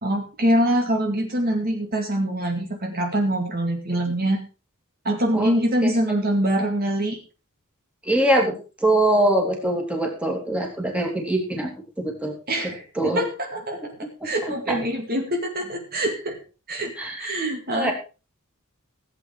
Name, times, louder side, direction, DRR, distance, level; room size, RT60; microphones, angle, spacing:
voice 1, 0.0-4.4 5.0-7.2 12.5-14.0 14.2-16.4 16.7-16.9 17.2-17.9, right 1 dB, 45° right, 3 dB, 2.2 m, -24 dB
voice 2, 8.0-8.6 8.8-11.7 12.0-12.4 13.0-13.3 14.4-14.8 17.0-17.4 17.7-17.9, right 1 dB, 5° right, 1 dB, 3.0 m, -23 dB
16.0 x 8.3 x 4.7 m, 0.34 s
head